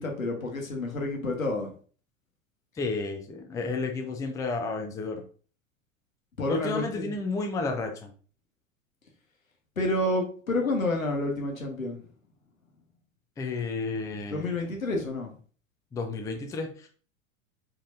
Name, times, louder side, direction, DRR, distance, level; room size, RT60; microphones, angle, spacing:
voice 1, 0.0-1.7 6.4-7.1 9.8-12.0 14.3-15.3, left 2 dB, 80° left, 2 dB, 1.3 m, -29 dB
voice 2, 2.7-5.2 6.5-8.1 13.4-14.6 15.9-16.9, left 3 dB, 10° left, 4 dB, 0.5 m, -31 dB
4.8 x 3.9 x 2.6 m, 0.41 s
figure-of-eight pair, 85°, 40 cm